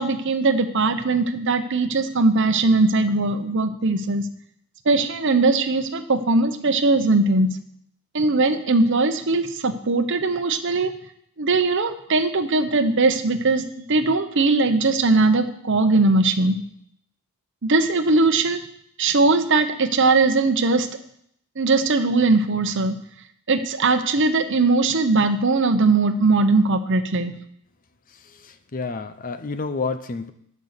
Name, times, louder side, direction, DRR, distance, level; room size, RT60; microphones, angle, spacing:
voice 1, 0.0-4.3 4.9-7.5 8.1-10.9 11.4-13.6 13.9-16.6 17.6-18.6 19.0-20.9 21.6-23.0 23.5-27.3, right 3 dB, 55° right, 9 dB, 0.9 m, -20 dB
voice 2, 28.4-30.3, left 4 dB, 40° left, 11 dB, 0.6 m, -29 dB
12.0 x 5.5 x 6.6 m, 0.71 s
head